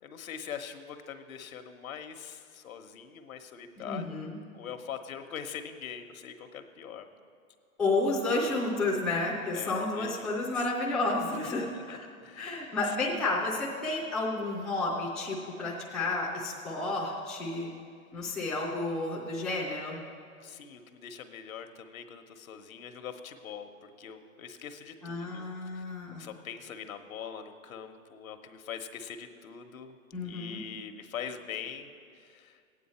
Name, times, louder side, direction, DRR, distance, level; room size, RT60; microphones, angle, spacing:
voice 1, 0.0-4.2 4.5-7.1 9.5-10.7 11.4-13.4 20.4-25.8 26.1-32.6, left 7 dB, 75° left, 7 dB, 1.1 m, -43 dB
voice 2, 3.8-4.3 7.8-12.0 12.4-17.7 18.1-20.0 25.0-26.3 30.1-30.6, left 2 dB, ahead, -7 dB, 0.4 m, -31 dB
15.0 x 9.3 x 4.3 m, 2.3 s
hypercardioid pair, 145°, 42 cm